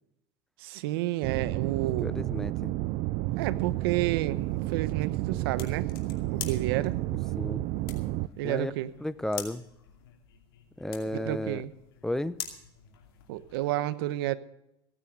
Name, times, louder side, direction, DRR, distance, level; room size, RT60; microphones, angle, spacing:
voice 1, 0.6-2.1 3.4-5.9 6.3-7.0 8.4-8.9 11.1-11.7 13.3-14.4, right 15 dB, 80° right, 16 dB, 0.9 m, -30 dB
sound 1, 1.2-8.3, right 18 dB, 60° right, 0.6 m, -31 dB
voice 2, 2.0-2.7 7.4-7.6 8.4-8.7 9.0-9.6 10.8-11.6 12.0-12.4, left 1 dB, 5° left, 16 dB, 0.7 m, -33 dB
sound 2, 3.3-13.7, left 9 dB, 90° left, 2.5 m, -46 dB
16.0 x 9.1 x 6.5 m, 0.83 s
supercardioid pair, 100°, 12 cm